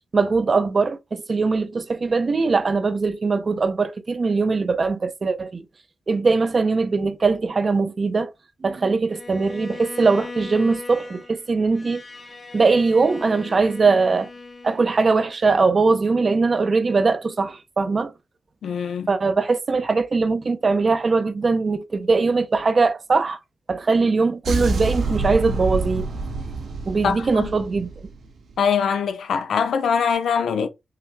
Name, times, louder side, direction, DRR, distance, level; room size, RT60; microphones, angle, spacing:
voice 1, 0.1-5.6 6.1-8.3 8.6-12.0 12.5-14.3 14.6-18.1 19.1-23.4 23.7-26.1 26.9-27.9, right 4 dB, 35° right, 0.5 m, -21 dB
Bowed string instrument, 9.1-15.3, left 3 dB, 30° left, 0.7 m, -39 dB
voice 2, 18.6-19.1 27.0-27.5 28.6-30.7, left 6 dB, 85° left, 0.5 m, -22 dB
sound 1, 24.4-28.5, right 3 dB, 80° right, 1.4 m, -27 dB
5.7 x 2.1 x 3.1 m
wide cardioid pair, 145°, 0 cm